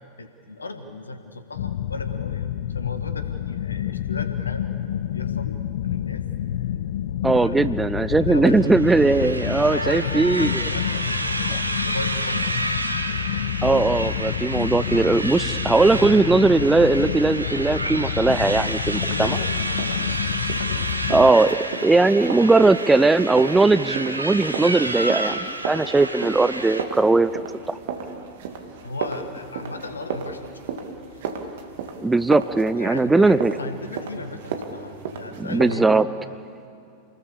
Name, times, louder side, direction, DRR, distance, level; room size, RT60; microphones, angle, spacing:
voice 1, 0.2-2.5 2.7-4.7 5.1-6.6 7.2-7.7 8.1-8.7 9.6-12.5 19.1-20.9 28.8-30.8 31.1-31.2 32.7-35.9, left 2 dB, 75° left, 8 dB, 1.7 m, -36 dB
sound 1, 1.5-21.3, left 10 dB, 60° left, 0.6 m, -28 dB
voice 2, 7.2-10.6 11.5-11.6 13.6-19.4 21.1-27.3 27.7-27.8 32.0-33.5 35.4-36.1, right 3 dB, 10° right, 13 dB, 0.6 m, -19 dB
sound 2, 8.5-26.8, right 1 dB, 85° right, 1.3 m, -30 dB
sound 3, 19.1-35.7, right 6 dB, 55° right, 2.1 m, -35 dB
28.5 x 19.5 x 7.1 m, 2.6 s
figure-of-eight pair, 90°, 0 cm